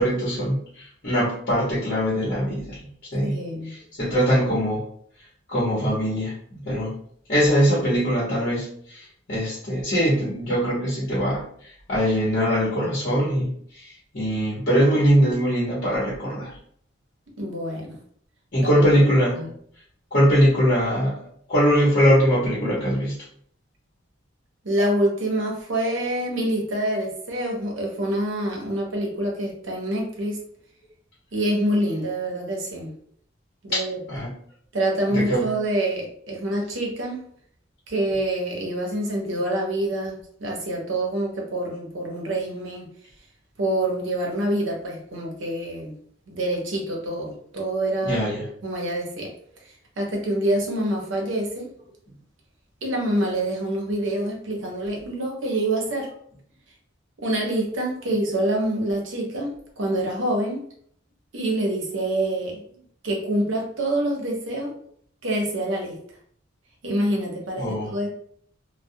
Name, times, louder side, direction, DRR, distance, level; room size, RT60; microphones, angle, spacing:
voice 1, 0.0-2.8 3.1-3.3 3.7-4.8 5.5-7.0 7.3-16.5 18.5-19.4 20.1-21.2 21.5-23.2 33.7-33.8 34.1-34.3 35.1-35.5 48.0-48.5 67.6-68.0, equal, 45° left, -7 dB, 0.9 m, -22 dB
voice 2, 3.2-3.7 17.4-18.0 18.7-18.8 19.3-19.5 24.6-30.4 31.3-32.9 33.6-34.0 34.7-37.2 37.9-42.9 43.6-45.9 46.3-48.2 48.6-49.3 50.0-51.7 52.8-56.1 57.2-59.5 59.8-60.6 61.3-62.6 63.0-64.7 65.2-66.0 66.8-68.1, right 1 dB, 75° right, 0 dB, 0.7 m, -26 dB
2.3 x 2.1 x 2.7 m, 0.62 s
head